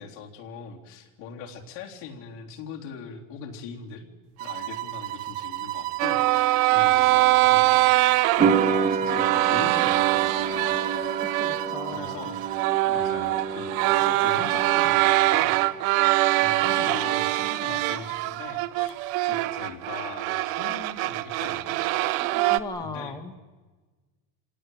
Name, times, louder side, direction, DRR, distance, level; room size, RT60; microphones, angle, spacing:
voice 1, 0.0-4.1 4.4-6.5 6.7-10.9 11.9-12.4 12.8-15.8 16.4-18.9 19.2-21.8 22.2-22.3 22.8-23.2, left 6 dB, 65° left, 0 dB, 3.7 m, -40 dB
sound 1, 4.4-12.8, right 16 dB, 60° right, 1.6 m, -35 dB
sound 2, 6.0-11.7 12.1-12.2 12.5-22.6, right 18 dB, 75° right, 1.1 m, -23 dB
sound 3, 8.4-15.2 15.5-16.3, right 6 dB, 20° right, 1.2 m, -29 dB
voice 2, 11.4-12.2 22.2-23.3, left 3 dB, 10° left, 7 dB, 1.1 m, -38 dB
27.0 x 18.0 x 9.4 m, 1.3 s
cardioid pair, 175°, 41 cm